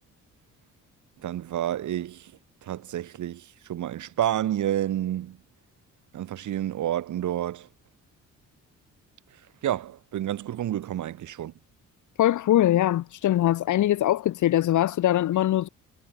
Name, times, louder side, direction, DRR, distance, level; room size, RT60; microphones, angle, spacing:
voice 1, 1.2-2.3 2.6-5.4 6.1-7.7 9.6-11.5, right 12 dB, 75° right, 7.7 m, -29 dB
voice 2, 12.2-15.7, left 13 dB, 75° left, 2.9 m, -22 dB
cardioid pair, 90°, 30 cm